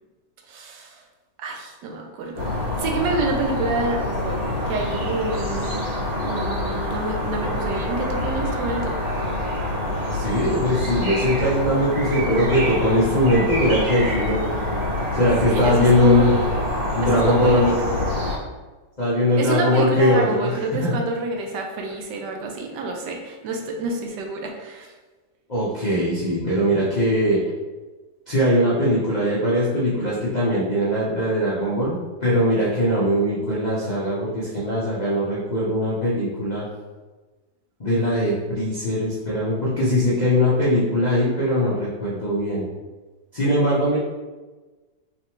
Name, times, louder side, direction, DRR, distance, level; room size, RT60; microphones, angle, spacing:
voice 1, 0.5-1.0 1.4-5.8 6.2-9.0 15.5-16.5 17.0-18.1 19.4-24.9, right 2 dB, 75° right, 2 dB, 1.2 m, -28 dB
sound 1, 2.3-18.4, left 1 dB, 60° right, 2.1 m, -26 dB
voice 2, 10.1-14.5 15.1-16.3 16.9-17.7 19.0-20.9 25.5-27.4 28.3-36.6 37.8-42.6 43.3-44.0, equal, 60° left, -7 dB, 0.4 m, -21 dB
3.7 x 3.4 x 3.0 m, 1.2 s
omnidirectional pair, 2.0 m